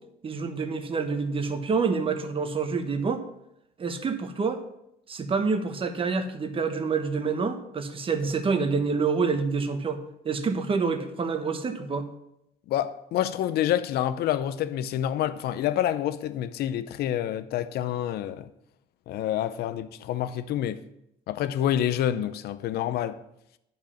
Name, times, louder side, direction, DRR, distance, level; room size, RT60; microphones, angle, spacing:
voice 1, 0.2-3.2 3.8-4.6 5.1-12.1, right 5 dB, 30° right, 1.1 m, -27 dB
voice 2, 12.7-18.5 19.1-20.8 21.3-23.2, left 11 dB, 70° left, 0.6 m, -27 dB
10.5 x 5.1 x 5.7 m
cardioid pair, 110°, 17 cm